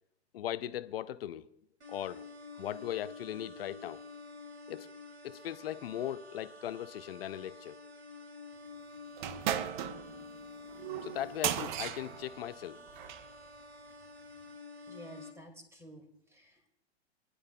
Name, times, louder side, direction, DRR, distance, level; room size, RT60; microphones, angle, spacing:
voice 1, 0.3-1.5 1.9-2.2 2.6-4.0 4.7-4.9 5.2-7.8 11.0-12.9, left 12 dB, 60° left, 0.6 m, -38 dB
sound 1, 1.8-15.3, left 3 dB, 80° right, 2.7 m, -50 dB
sound 2, 9.2-13.3, right 11 dB, 45° right, 0.7 m, -37 dB
voice 2, 14.9-16.7, equal, 10° right, 2.3 m, -52 dB
23.5 x 11.0 x 2.2 m
figure-of-eight pair, 105°, 33 cm